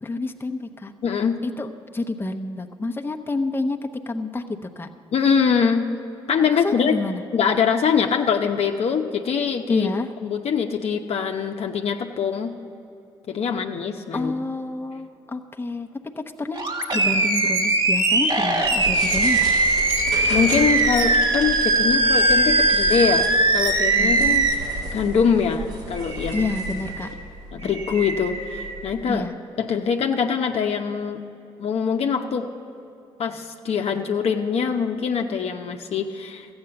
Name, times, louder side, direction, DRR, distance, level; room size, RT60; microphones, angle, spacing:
voice 1, 0.0-0.9 1.4-1.7 1.9-4.9 6.6-7.2 9.7-10.1 14.1-15.9 16.2-16.7 16.9-19.5 24.0-24.4 26.3-27.1 27.6-27.7 29.1-29.3, left 2 dB, 20° left, 3 dB, 1.0 m, -28 dB
voice 2, 1.0-1.4 5.1-5.8 6.3-7.0 7.3-12.5 13.3-14.3 20.3-23.3 23.5-24.5 24.9-26.8 27.5-29.2 29.6-31.2 31.6-32.5 33.2-36.5, left 6 dB, 60° left, 4 dB, 0.9 m, -23 dB
Animal, 16.5-24.5, right 2 dB, 40° right, 1.8 m, -20 dB
sound 1, 18.6-29.3, right 1 dB, 85° right, 2.6 m, -33 dB
14.0 x 8.9 x 6.9 m, 2.6 s
hypercardioid pair, 50°, 12 cm